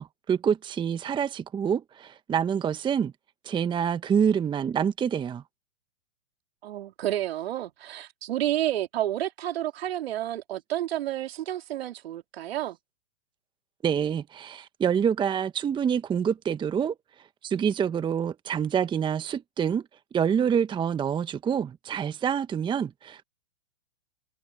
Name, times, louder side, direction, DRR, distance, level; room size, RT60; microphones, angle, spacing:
voice 1, 0.0-3.1 3.4-5.4 13.8-16.9 17.4-19.8 20.1-23.2, right 8 dB, 15° right, 1.0 m, -26 dB
voice 2, 6.6-12.8, right 13 dB, 60° right, 3.2 m, -30 dB
hypercardioid pair, 120°, 34 cm